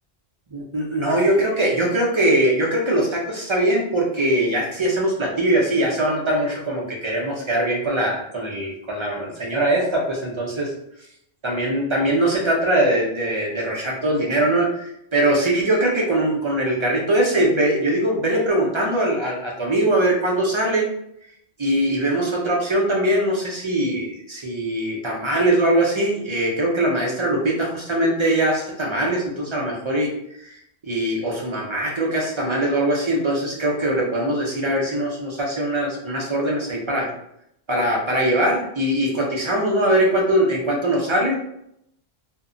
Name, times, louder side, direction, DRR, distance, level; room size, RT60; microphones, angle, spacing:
voice 1, 0.5-10.7 11.4-20.9 21.6-30.1 30.4-30.5 30.9-37.1 37.7-41.3, right 1 dB, 40° right, -2 dB, 0.4 m, -21 dB
2.1 x 2.0 x 3.6 m, 0.75 s
omnidirectional pair, 1.1 m